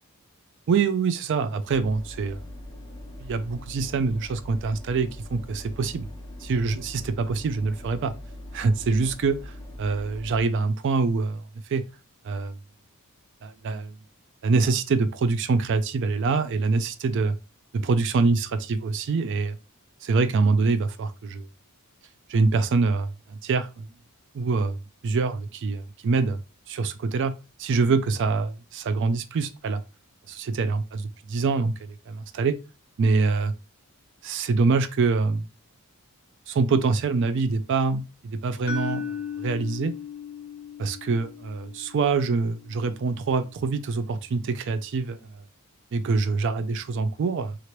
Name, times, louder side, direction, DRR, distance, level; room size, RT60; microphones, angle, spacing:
voice 1, 0.7-2.4 3.2-6.1 6.4-8.1 8.5-11.4 11.7-11.8 12.2-12.5 13.4-13.9 14.4-17.3 17.7-19.6 20.0-21.5 22.3-23.9 24.3-24.8 25.0-26.4 26.7-27.3 27.6-29.8 30.3-31.0 31.3-32.6 33.0-33.5 34.2-35.4 36.5-39.1 39.4-39.9 40.8-45.2 45.9-47.6, right 4 dB, 55° right, 0.3 m, -25 dB
sound 1, 1.7-10.4, left 1 dB, 20° left, 0.5 m, -41 dB
sound 2, 38.7-42.7, left 7 dB, 65° left, 0.6 m, -36 dB
2.9 x 2.5 x 3.0 m
head